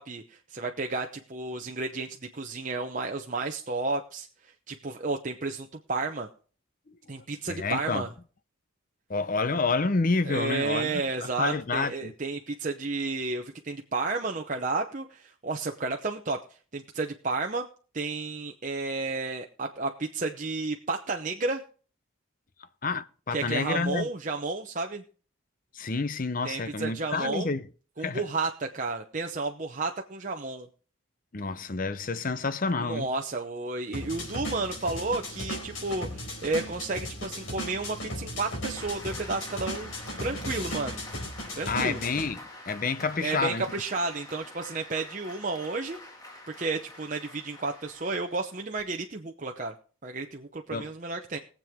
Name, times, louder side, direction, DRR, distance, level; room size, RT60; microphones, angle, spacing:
voice 1, 0.0-4.3 4.7-6.3 7.1-8.1 10.3-16.4 16.7-17.7 17.9-21.6 23.3-25.0 26.4-27.5 28.0-30.7 32.8-39.9 40.2-41.0 41.6-42.0 43.2-46.0 46.6-49.7 50.0-51.4, right 3 dB, 40° right, 0.8 m, -32 dB
voice 2, 7.5-8.1 9.1-12.1 22.8-24.1 25.7-27.7 28.0-28.2 31.3-33.1 41.7-43.7 50.7-50.9, left 4 dB, 40° left, 0.7 m, -29 dB
sound 1, 33.9-42.3, equal, 75° left, 4.2 m, -36 dB
Applause, 38.8-48.8, left 1 dB, 15° left, 2.1 m, -47 dB
21.0 x 7.6 x 3.6 m
head